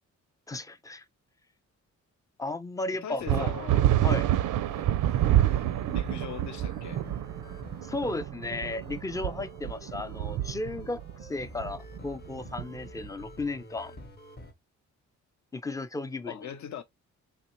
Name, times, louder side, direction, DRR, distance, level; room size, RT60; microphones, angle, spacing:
voice 1, 0.5-1.0 2.4-3.5 4.0-4.3 7.8-11.0 11.3-13.9 15.5-16.5, left 2 dB, 10° left, 0.3 m, -34 dB
voice 2, 3.0-3.9 5.9-7.0 16.3-16.8, left 8 dB, 65° left, 0.7 m, -40 dB
sound 1, 3.3-13.2, right 12 dB, 80° right, 0.5 m, -28 dB
sound 2, 4.5-14.5, left 1 dB, 30° left, 0.7 m, -48 dB
4.0 x 3.1 x 2.9 m
wide cardioid pair, 150°, 31 cm